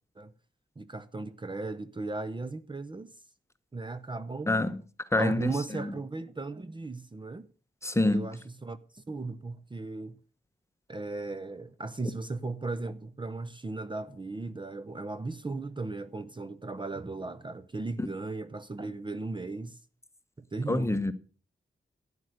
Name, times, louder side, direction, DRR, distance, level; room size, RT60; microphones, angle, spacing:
voice 1, 0.8-3.1 3.7-4.6 5.2-7.5 8.0-10.2 10.9-19.8 20.4-21.0, right 3 dB, 25° right, 0.7 m, -36 dB
voice 2, 5.1-5.9 7.8-8.2 20.7-21.1, left 2 dB, 15° left, 1.0 m, -26 dB
12.0 x 9.7 x 6.5 m
wide cardioid pair, 100°, 20 cm